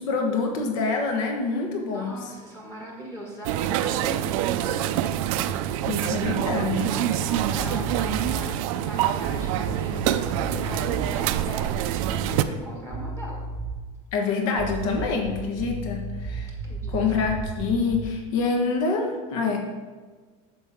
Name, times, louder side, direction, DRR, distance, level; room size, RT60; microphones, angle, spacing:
voice 1, 0.0-2.1 5.8-7.0 14.1-16.5 16.9-19.6, left 4 dB, 65° left, 2 dB, 1.4 m, -26 dB
voice 2, 1.9-4.9 6.9-8.5 8.8-13.4 16.6-16.9, right 1 dB, 15° left, -2 dB, 1.4 m, -39 dB
sound 1, 3.4-12.4, right 12 dB, 70° right, 0.5 m, -26 dB
sound 2, 7.6-8.5 9.2-11.1 11.9-12.6 12.9-13.9 14.5-18.2, right 2 dB, 15° right, 1.0 m, -34 dB
9.3 x 7.3 x 3.6 m, 1.4 s
cardioid pair, 170°, 18 cm